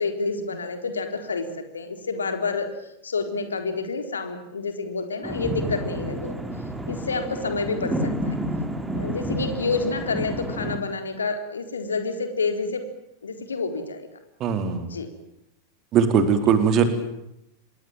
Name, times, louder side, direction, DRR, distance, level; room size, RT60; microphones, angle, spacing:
voice 1, 0.0-1.5 1.7-2.7 3.0-6.3 6.9-8.4 8.9-12.8 13.2-14.1 14.9-15.1, left 4 dB, 70° left, 7 dB, 4.0 m, -28 dB
sound 1, 5.2-10.8, equal, 5° right, 3.8 m, -30 dB
voice 2, 14.4-14.9 15.9-16.8, right 7 dB, 35° right, 9 dB, 4.1 m, -20 dB
26.5 x 22.0 x 9.0 m, 0.80 s
figure-of-eight pair, 90°, 0 cm